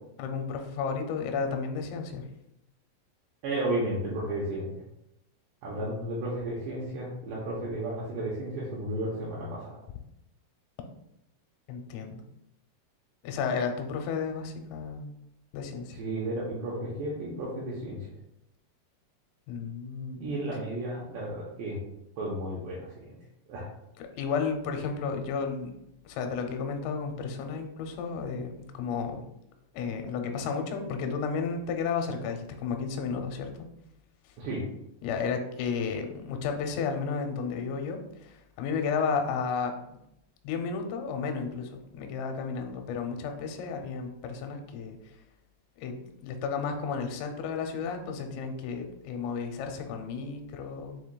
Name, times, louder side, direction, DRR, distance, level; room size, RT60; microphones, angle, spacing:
voice 1, 0.2-2.2 11.7-12.2 13.2-15.1 15.5-16.0 19.5-20.3 24.0-25.7 26.1-29.2 29.7-33.7 35.0-39.7 40.4-45.0 45.8-45.9 46.2-51.0, left 5 dB, 85° left, 4 dB, 3.1 m, -32 dB
voice 2, 3.4-4.7 5.6-9.8 15.9-18.1 20.2-21.8 22.2-23.2 23.5-23.7 34.4-34.6, right 1 dB, 80° right, -6 dB, 2.4 m, -33 dB
7.3 x 2.7 x 2.2 m, 0.83 s
omnidirectional pair, 5.7 m